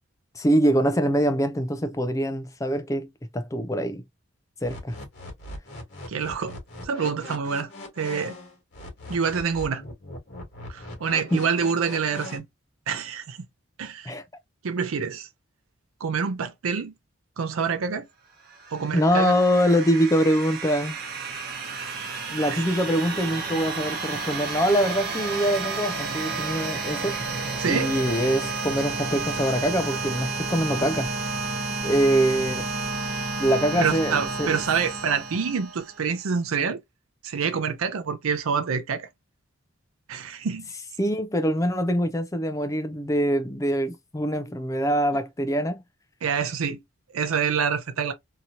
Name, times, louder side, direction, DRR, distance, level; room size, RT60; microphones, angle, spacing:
voice 1, 0.4-3.1 3.3-4.0 4.6-5.0 11.3-11.4 14.1-14.2 18.9-21.0 22.3-27.2 27.6-31.1 31.8-32.7 33.4-34.6 41.0-45.8, equal, 15° left, 0.4 m, -24 dB
sound 1, 4.6-12.4, left 1 dB, 50° left, 1.4 m, -40 dB
voice 2, 6.1-6.6 6.8-7.7 8.0-8.3 9.1-9.8 10.7-12.5 12.9-13.4 13.8-14.1 14.6-15.3 16.0-16.9 17.4-18.0 18.7-19.3 22.5-22.6 27.6-27.9 33.8-36.8 37.2-39.1 40.1-40.7 46.2-46.8 47.1-48.1, right 6 dB, 85° right, 0.5 m, -26 dB
sound 2, 18.5-36.1, right 3 dB, 45° right, 0.9 m, -31 dB
2.9 x 2.8 x 2.4 m
head